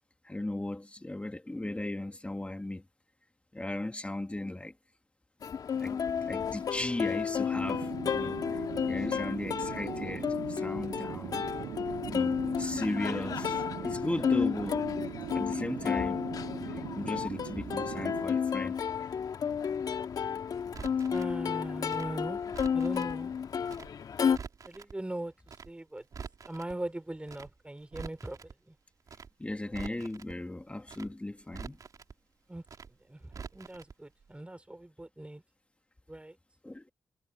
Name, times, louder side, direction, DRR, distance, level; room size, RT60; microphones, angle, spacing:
voice 1, 0.2-2.8 3.5-4.7 5.8-11.5 12.1-14.9 15.3-16.2 16.6-18.8 29.4-31.8 36.6-36.8, left 1 dB, 15° left, 2.4 m, -37 dB
Plucked string instrument, 5.4-24.4, left 7 dB, 60° left, 2.0 m, -32 dB
sound 1, 7.5-18.2, right 12 dB, 80° right, 5.8 m, -41 dB
Crackle, 20.7-21.3 21.9-23.1 23.7-23.9 24.2-24.9 25.5-25.7 26.0-26.7 27.3-27.5 27.8-28.5 29.1-29.3 29.6-30.3 30.9-31.1 31.4-32.1 32.7-32.9 33.2-33.9 34.2-34.3, right 6 dB, 55° right, 4.0 m, -45 dB
voice 2, 21.1-22.4 22.7-23.3 24.7-25.3 25.7-26.0 26.5-28.7 32.5-32.6 33.1-35.4 36.1-36.4, right 1 dB, 15° right, 3.7 m, -40 dB
hypercardioid pair, 40°, 7 cm